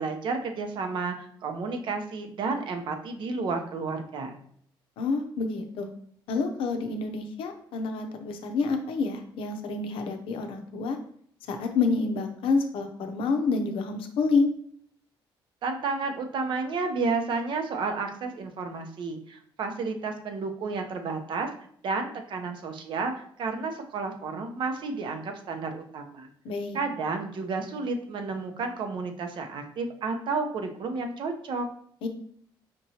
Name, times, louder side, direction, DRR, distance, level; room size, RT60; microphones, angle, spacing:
voice 1, 0.0-4.4 15.6-21.5 21.8-26.3 26.7-31.7, right 4 dB, 65° right, 5 dB, 0.7 m, -31 dB
voice 2, 5.0-5.9 6.3-11.0 11.5-14.5 26.4-26.8 32.0-32.1, left 4 dB, 90° left, 6 dB, 0.6 m, -28 dB
5.1 x 3.0 x 2.8 m, 0.62 s
cardioid pair, 110°, 9 cm